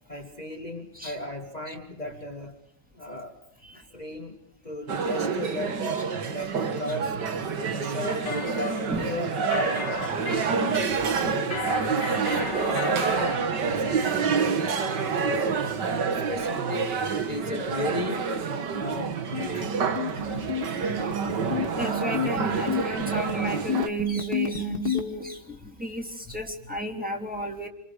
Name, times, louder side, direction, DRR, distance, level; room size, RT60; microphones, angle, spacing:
voice 1, 0.1-2.6 2.9-3.4 3.9-4.4 4.6-7.2 7.6-10.5 11.1-11.5 12.2-14.4 14.9-15.4 15.7-15.8 16.1-18.3 18.7-20.4, left 1 dB, 25° left, 2 dB, 2.5 m, -36 dB
sound 1, 4.9-23.9, right 5 dB, 80° right, 2.3 m, -28 dB
sound 2, 8.1-13.5, left 4 dB, 90° left, 3.6 m, -36 dB
sound 3, 18.9-25.0, left 3 dB, 65° left, 2.9 m, -29 dB
voice 2, 21.8-27.7, right 1 dB, 5° right, 1 dB, 3.5 m, -33 dB
28.0 x 27.0 x 6.6 m, 0.67 s
omnidirectional pair, 1.8 m